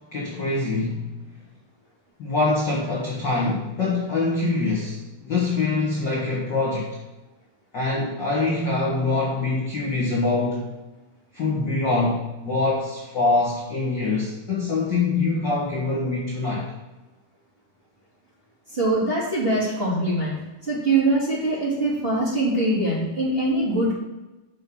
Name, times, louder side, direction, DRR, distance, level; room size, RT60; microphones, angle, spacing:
voice 1, 0.1-1.1 2.2-7.0 7.7-10.7 11.3-16.7, left 3 dB, 45° left, -5 dB, 1.5 m, -24 dB
voice 2, 18.7-20.4 20.6-23.9, right 2 dB, 15° right, -8 dB, 2.5 m, -23 dB
7.8 x 5.7 x 6.0 m, 1.1 s
omnidirectional pair, 4.2 m